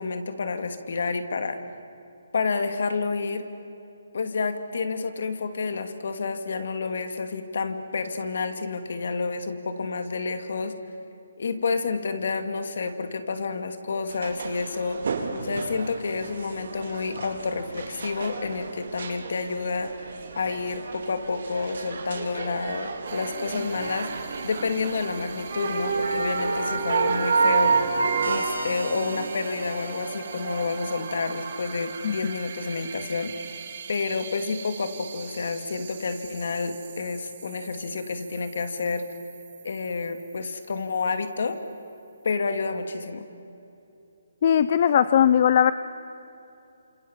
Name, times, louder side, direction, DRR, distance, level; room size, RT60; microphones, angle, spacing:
voice 1, 0.0-1.6 2.3-3.4 4.1-10.7 11.4-19.9 20.4-24.1 24.4-27.8 28.2-33.3 33.9-39.1 39.6-41.6 42.2-43.2, left 4 dB, 60° left, 8 dB, 2.6 m, -29 dB
sound 1, 14.1-28.4, right 4 dB, 60° right, 4.0 m, -29 dB
sound 2, 23.1-41.5, right 6 dB, 40° right, 2.8 m, -40 dB
sound 3, 28.2-31.6, right 3 dB, 90° right, 3.5 m, -40 dB
voice 2, 44.4-45.7, left 9 dB, 35° left, 14 dB, 0.6 m, -19 dB
28.5 x 27.5 x 7.5 m, 2.8 s
hypercardioid pair, 170°, 0 cm